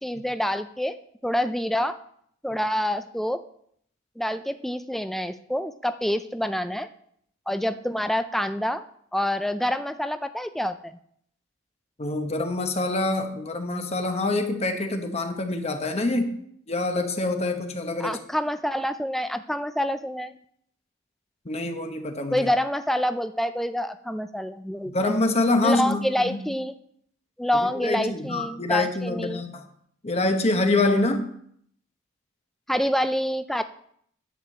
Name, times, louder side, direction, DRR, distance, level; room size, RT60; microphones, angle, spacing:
voice 1, 0.0-2.0 2.4-3.4 4.2-6.9 7.5-8.8 9.1-10.9 18.0-20.3 22.3-24.9 25.6-26.7 27.4-29.4 32.7-33.6, equal, ahead, 10 dB, 0.4 m, -27 dB
voice 2, 12.0-16.4 16.7-18.2 21.4-22.5 24.9-26.4 27.5-29.7 30.0-31.3, left 2 dB, 30° left, 6 dB, 0.9 m, -25 dB
10.5 x 4.9 x 7.0 m, 0.67 s
head